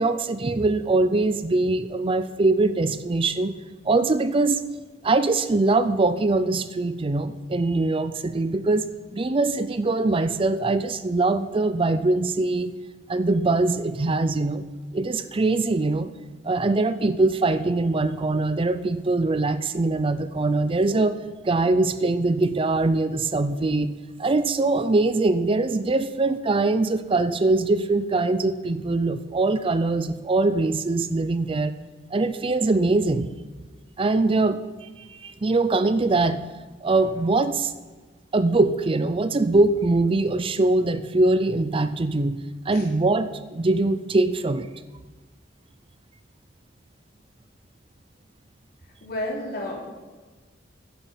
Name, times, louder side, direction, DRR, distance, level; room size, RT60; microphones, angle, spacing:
voice 1, 0.0-3.5 3.9-4.6 5.0-12.7 13.1-14.7 14.9-16.1 16.4-21.2 21.4-23.9 24.2-31.7 32.1-33.3 34.0-36.4 36.8-37.7 38.3-42.4 42.7-44.7, right 2 dB, 30° right, 12 dB, 0.5 m, -22 dB
voice 2, 49.0-50.0, left 1 dB, 55° left, -2 dB, 3.7 m, -31 dB
11.5 x 9.3 x 7.2 m, 1.3 s
head